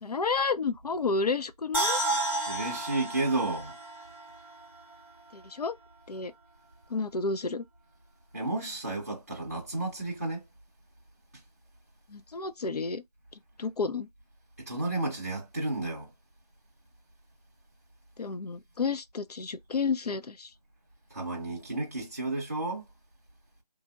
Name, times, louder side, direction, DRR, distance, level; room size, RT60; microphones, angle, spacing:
voice 1, 0.0-2.0 5.3-5.8 6.1-6.3 6.9-7.7 12.1-13.0 13.6-14.1 18.2-20.5, left 4 dB, 75° left, 0.5 m, -31 dB
sound 1, 1.7-5.0 5.3-5.4, right 2 dB, 35° left, 1.3 m, -32 dB
voice 2, 2.5-3.8 8.3-10.4 14.6-16.1 21.1-22.9, right 2 dB, 25° right, 0.6 m, -32 dB
2.9 x 2.6 x 2.3 m
figure-of-eight pair, 165°, 20 cm